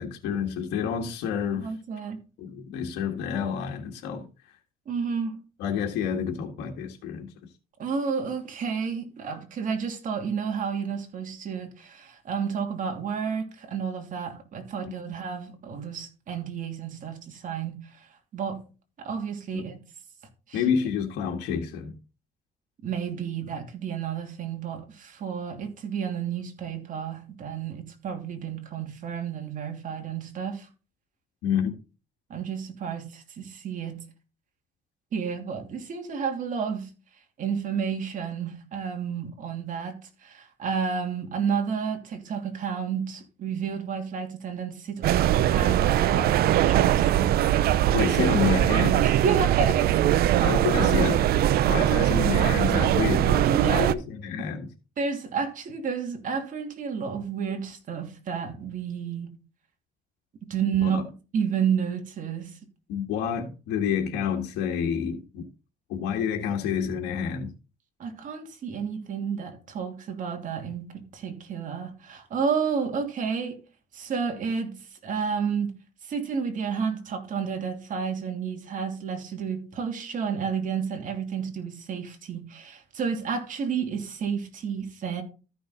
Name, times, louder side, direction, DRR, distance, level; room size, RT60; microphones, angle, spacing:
voice 1, 0.0-1.7 2.4-4.6 5.6-7.3 19.5-19.6 20.5-21.9 31.4-31.7 47.9-49.2 50.4-54.7 60.8-61.0 62.9-65.4 65.9-67.5, left 7 dB, 90° left, 1.8 m, -29 dB
voice 2, 1.5-2.2 4.9-5.4 7.8-17.8 18.3-18.6 19.0-19.8 20.5-20.6 22.8-30.7 32.3-34.0 35.1-36.9 37.4-47.4 49.0-50.5 53.4-54.0 55.0-59.4 60.4-61.0 61.3-62.6 68.0-73.6 73.9-75.8 76.1-85.2, right 6 dB, 50° right, 2.9 m, -31 dB
sound 1, 45.0-53.9, right 12 dB, 65° right, 0.6 m, -21 dB
13.5 x 6.2 x 3.9 m
cardioid pair, 110°, 17 cm